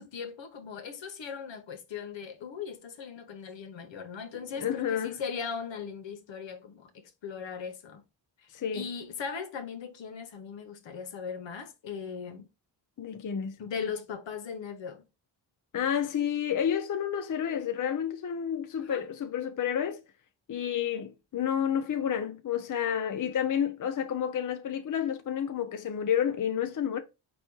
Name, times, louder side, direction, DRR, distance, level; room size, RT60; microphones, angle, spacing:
voice 1, 0.0-8.0 8.7-12.5 13.6-15.0 18.8-19.0, left 6 dB, 70° left, 1.0 m, -39 dB
voice 2, 4.6-5.2 8.5-8.9 13.0-13.6 15.7-20.0 20.5-27.0, left 9 dB, 45° left, 0.6 m, -30 dB
4.2 x 2.3 x 4.5 m
cardioid pair, 50°, 46 cm